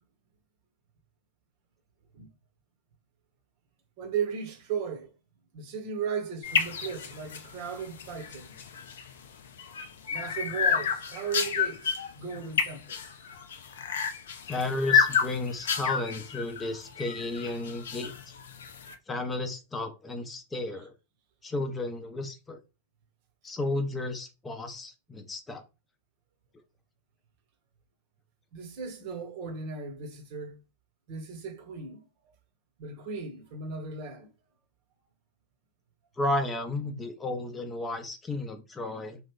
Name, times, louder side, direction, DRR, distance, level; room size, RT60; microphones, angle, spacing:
voice 1, 4.0-5.1 5.5-8.5 10.1-13.0 28.5-30.6 31.1-32.0 32.8-34.3, right 6 dB, 45° right, 1.0 m, -36 dB
sound 1, 6.4-18.9, left 6 dB, 60° left, 0.5 m, -30 dB
voice 2, 14.5-18.1 19.1-20.9 21.4-22.6 23.4-25.6 36.2-39.2, left 2 dB, 15° left, 0.7 m, -33 dB
3.0 x 2.4 x 3.6 m
figure-of-eight pair, 90°, 0 cm